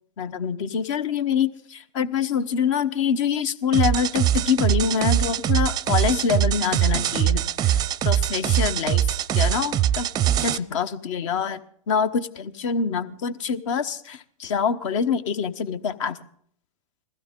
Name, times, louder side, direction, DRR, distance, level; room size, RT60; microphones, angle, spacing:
voice 1, 0.2-10.1 10.4-11.6 11.9-16.2, left 6 dB, 55° left, 13 dB, 1.2 m, -25 dB
sound 1, 3.7-10.6, right 11 dB, 20° right, 0.5 m, -22 dB
20.5 x 15.5 x 3.7 m, 0.62 s
hypercardioid pair, 120°, 19 cm